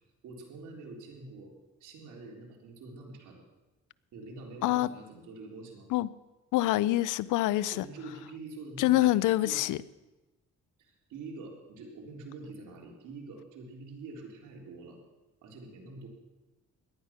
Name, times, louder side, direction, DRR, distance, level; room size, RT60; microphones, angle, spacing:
voice 1, 0.2-1.5 1.8-3.4 4.1-5.9 7.7-9.6 10.8-15.0 15.4-16.1, right 3 dB, 80° right, 0 dB, 3.7 m, -46 dB
voice 2, 6.5-7.8 8.8-9.8, left 16 dB, 85° left, 19 dB, 0.5 m, -25 dB
18.0 x 12.0 x 5.9 m, 1.1 s
cardioid pair, 90°, 30 cm